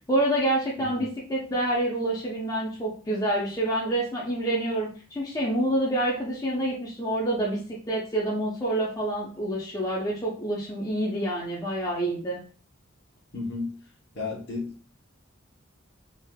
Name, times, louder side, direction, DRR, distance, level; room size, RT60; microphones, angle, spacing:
voice 1, 0.1-7.6 7.9-12.4, right 1 dB, 15° left, -5 dB, 0.5 m, -27 dB
voice 2, 0.8-1.1 13.3-13.8 14.1-14.9, left 3 dB, 55° left, -1 dB, 0.9 m, -34 dB
3.3 x 2.5 x 2.2 m, 0.40 s
head